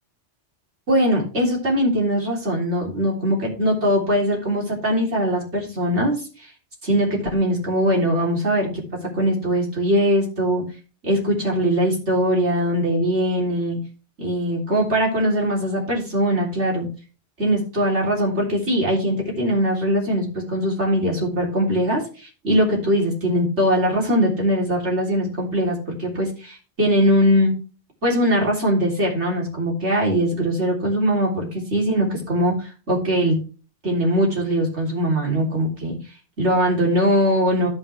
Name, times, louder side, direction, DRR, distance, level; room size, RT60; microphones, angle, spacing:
voice 1, 0.9-6.2 6.8-8.8 9.1-10.6 11.0-13.8 14.2-16.9 17.4-27.5 28.0-33.4 33.8-36.0 36.4-37.7, equal, 90° right, -2 dB, 3.9 m, -21 dB
13.5 x 5.7 x 3.3 m, 0.35 s
omnidirectional pair, 1.1 m